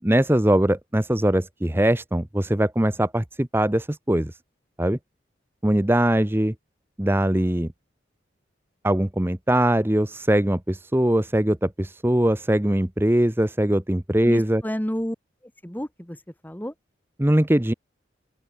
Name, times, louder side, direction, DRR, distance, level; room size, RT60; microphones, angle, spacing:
voice 1, 0.0-4.4 4.8-5.0 5.6-6.5 7.0-7.7 8.8-14.6 17.2-17.7, right 1 dB, 10° right, 0.8 m, -21 dB
voice 2, 14.2-15.2 15.6-16.2 16.4-16.7, equal, 10° left, 1.4 m, -29 dB
open air
head